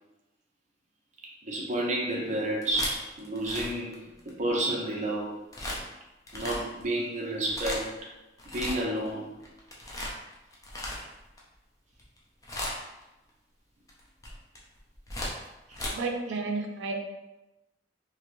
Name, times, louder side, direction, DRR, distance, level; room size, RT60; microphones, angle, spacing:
voice 1, 1.4-5.4 6.3-7.9 8.5-9.3 15.7-15.8, right 1 dB, 40° right, -2 dB, 0.6 m, -30 dB
sound 1, 2.4-4.6 5.5-5.8 6.3-6.8 7.3-8.0 8.4-9.1 9.4-11.4 11.9-12.2 12.4-13.0 13.9-15.9, left 1 dB, 20° left, 0.5 m, -36 dB
voice 2, 15.9-16.9, right 3 dB, 90° right, 3 dB, 0.4 m, -31 dB
3.0 x 2.7 x 2.5 m, 1.0 s
head